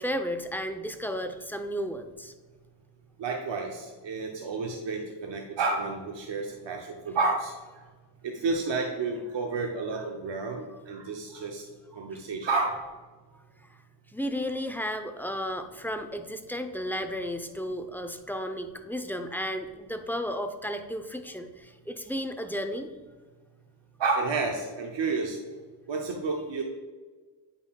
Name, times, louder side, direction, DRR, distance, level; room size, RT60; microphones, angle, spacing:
voice 1, 0.0-2.3 10.7-10.8 12.1-12.2 14.1-22.9, equal, 5° left, 6 dB, 0.6 m, -33 dB
voice 2, 3.2-7.5 8.2-11.6 11.9-12.7 24.0-25.4 25.9-26.6, right 3 dB, 90° right, 1 dB, 0.7 m, -30 dB
8.7 x 5.3 x 2.3 m, 1.4 s
cardioid pair, 40°, 43 cm